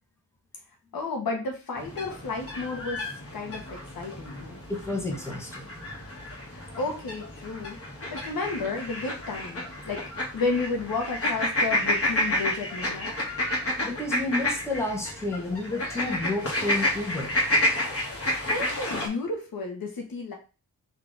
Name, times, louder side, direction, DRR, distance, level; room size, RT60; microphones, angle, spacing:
voice 1, 0.9-3.0 3.3-4.6 6.5-7.8 8.1-10.0 10.3-13.1 18.2-20.3, left 3 dB, 75° left, 1 dB, 1.2 m, -32 dB
sound 1, 1.8-19.1, left 1 dB, 40° left, 1.5 m, -30 dB
voice 2, 4.7-5.7 13.8-17.4, left 2 dB, 5° left, 0 dB, 1.4 m, -30 dB
3.6 x 2.8 x 3.9 m, 0.33 s
cardioid pair, 60°, 35 cm